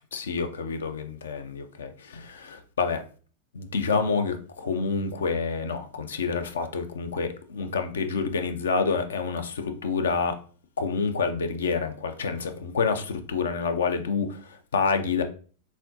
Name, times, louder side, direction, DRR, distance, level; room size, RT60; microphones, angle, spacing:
voice 1, 0.1-3.0 3.5-10.4 10.8-15.2, left 5 dB, 65° left, 0.5 m, -28 dB
4.2 x 3.5 x 2.7 m
figure-of-eight pair, 90°, 0 cm